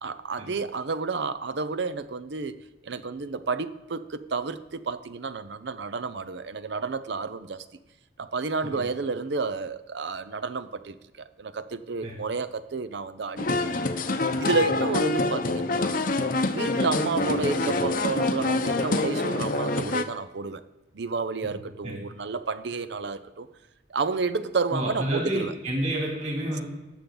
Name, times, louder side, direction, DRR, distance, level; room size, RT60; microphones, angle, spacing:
voice 1, 0.0-7.6 8.2-13.8 14.4-16.0 16.5-20.6 20.9-23.5 23.9-25.5, right 4 dB, 65° right, 0.6 m, -31 dB
sound 1, 13.4-20.0, left 2 dB, 45° left, 0.7 m, -26 dB
voice 2, 24.7-26.6, right 1 dB, 35° right, 3.2 m, -30 dB
18.5 x 6.9 x 3.9 m
head